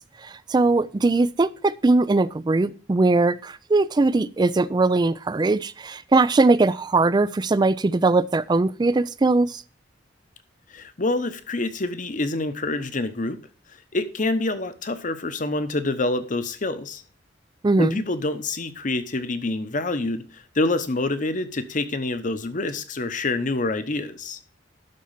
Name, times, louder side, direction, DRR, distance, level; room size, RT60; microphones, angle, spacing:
voice 1, 0.2-9.6 17.6-18.0, right 3 dB, 25° right, 0.3 m, -20 dB
voice 2, 10.7-13.4 13.9-17.0 17.8-24.4, left 2 dB, 45° left, 0.9 m, -26 dB
12.0 x 4.3 x 5.7 m
head